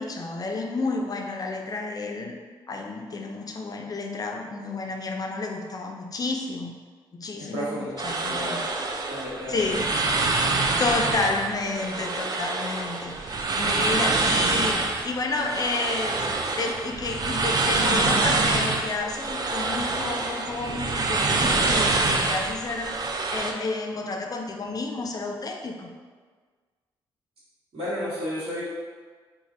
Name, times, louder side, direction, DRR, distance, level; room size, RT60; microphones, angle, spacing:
voice 1, 0.0-2.4 2.7-6.8 7.1-7.8 8.0-8.6 9.5-9.9 10.8-16.3 16.6-25.9, left 3 dB, 35° left, 3 dB, 0.4 m, -30 dB
voice 2, 7.5-8.7 9.1-9.6 27.7-28.6, equal, 65° right, -10 dB, 1.4 m, -32 dB
sound 1, 8.0-23.5, right 3 dB, 40° right, 0.4 m, -26 dB
3.1 x 2.4 x 2.5 m, 1.5 s
supercardioid pair, 50°, 10 cm